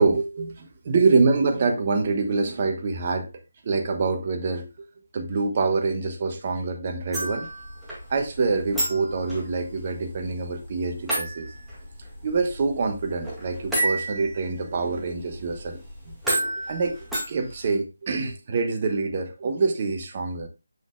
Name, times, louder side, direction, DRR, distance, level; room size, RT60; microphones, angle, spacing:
voice 1, 0.0-3.3 3.6-4.7 5.1-7.5 8.1-11.5 12.2-15.8 16.1-16.2 16.7-16.9 17.3-20.5, right 4 dB, 35° right, 1.2 m, -25 dB
sound 1, 7.1-17.7, right 1 dB, ahead, 2.0 m, -32 dB
7.5 x 6.1 x 2.2 m
figure-of-eight pair, 155°, 0 cm